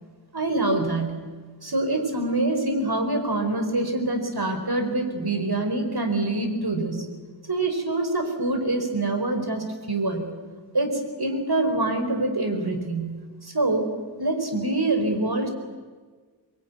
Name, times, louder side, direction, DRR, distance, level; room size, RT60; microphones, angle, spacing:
voice 1, 0.3-1.2 1.6-7.1 7.5-10.4 10.7-15.5, right 2 dB, 60° right, 5 dB, 4.6 m, -25 dB
24.0 x 22.5 x 9.6 m, 1.5 s
wide cardioid pair, 45°, 43 cm